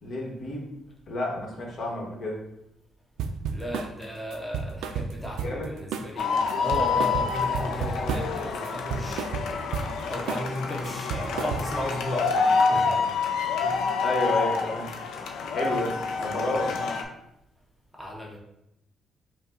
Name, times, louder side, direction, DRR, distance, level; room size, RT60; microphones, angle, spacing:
voice 1, 0.0-0.7 1.1-2.4 5.4-5.7 14.0-14.9 15.5-17.0, left 1 dB, 60° left, -1 dB, 1.3 m, -30 dB
sound 1, 3.2-3.9 4.3-5.7 5.9-6.2 6.5-8.4 8.6-9.9 10.3-10.6 10.8-11.9, right 6 dB, 85° right, 0.3 m, -32 dB
voice 2, 3.5-9.5 10.0-13.1 13.6-14.0 17.9-18.4, left 1 dB, ahead, -1 dB, 0.7 m, -35 dB
sound 2, 6.2-17.0, left 5 dB, 85° left, 0.5 m, -27 dB
5.2 x 2.3 x 3.8 m, 0.83 s
cardioid pair, 90°, 0 cm